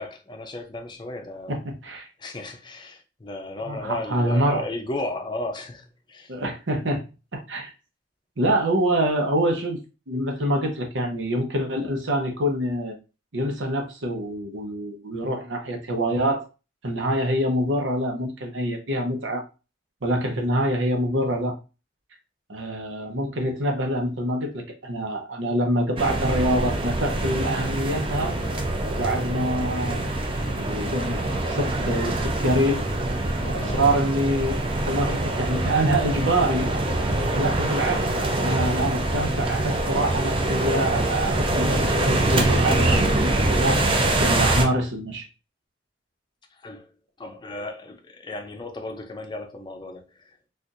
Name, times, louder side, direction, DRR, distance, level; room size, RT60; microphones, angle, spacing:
voice 1, 0.0-1.6 2.2-6.3 33.6-33.8 46.6-46.9 47.2-50.3, left 2 dB, 25° left, 0.6 m, -35 dB
voice 2, 1.5-2.1 3.7-4.6 6.3-7.0 7.3-7.7 8.4-9.8 10.1-13.0 13.3-16.4 16.8-19.4 20.0-21.6 22.5-28.3 28.9-30.1 30.4-32.8 33.4-36.7 37.3-43.8 44.2-45.3, right 1 dB, 85° right, 0.9 m, -25 dB
sound 1, 26.0-44.7, right 2 dB, 30° right, 0.5 m, -24 dB
4.3 x 2.5 x 2.5 m
head